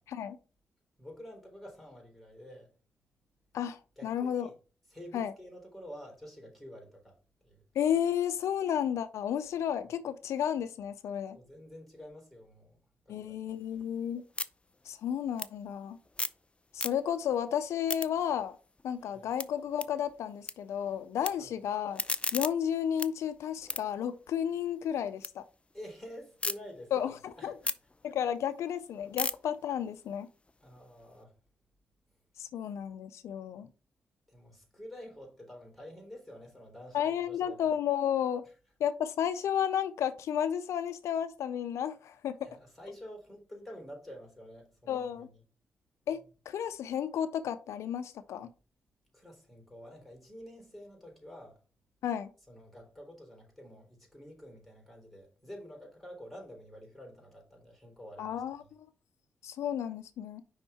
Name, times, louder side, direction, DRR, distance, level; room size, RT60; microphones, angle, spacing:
voice 1, 1.0-2.7 4.0-4.5 4.9-7.2 7.4-7.6 11.3-12.8 13.1-13.8 19.1-19.3 21.3-21.5 25.7-27.7 30.6-31.4 34.3-37.7 38.4-38.5 42.4-45.4 49.1-51.6 52.5-58.4, equal, ahead, 3.8 m, -49 dB
voice 2, 3.5-4.5 5.1-5.3 7.8-11.4 13.1-14.2 14.9-16.0 16.7-18.6 18.8-22.0 22.3-25.4 26.9-27.5 28.0-30.3 32.4-33.7 36.9-38.4 38.8-42.4 44.9-45.3 46.1-46.2 46.5-48.5 52.0-52.3 58.2-58.6 59.4-60.4, left 9 dB, 85° left, 0.4 m, -32 dB
sound 1, 13.5-16.5 16.7-17.3 17.7-20.5 20.8-21.3 21.7-25.3 25.7-26.6 27.0-31.2, left 2 dB, 25° left, 0.5 m, -39 dB
5.4 x 3.5 x 5.4 m
supercardioid pair, 50°, 5 cm